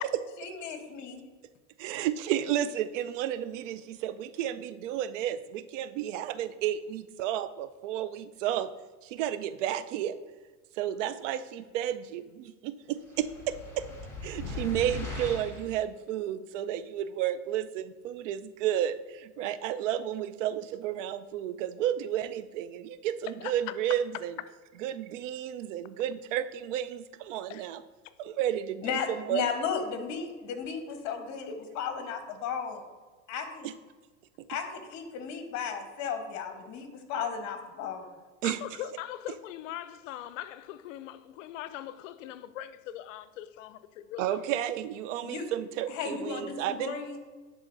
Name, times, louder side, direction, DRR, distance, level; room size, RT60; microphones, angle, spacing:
voice 1, 0.4-1.2 28.8-32.8 33.3-33.7 34.5-38.1 45.2-45.4 45.9-47.2, left 6 dB, 50° left, 1.1 m, -35 dB
voice 2, 1.8-8.7 9.0-10.2 10.8-13.8 14.2-24.4 24.8-27.8 28.2-29.5 33.6-33.7 38.4-38.6 44.2-47.0, right 11 dB, 75° right, 0.5 m, -32 dB
sound 1, 13.1-15.7, left 3 dB, 5° left, 1.5 m, -39 dB
voice 3, 23.4-23.7 27.5-27.7 38.4-44.4, left 12 dB, 80° left, 0.5 m, -41 dB
10.5 x 3.7 x 2.6 m
supercardioid pair, 115°, 38 cm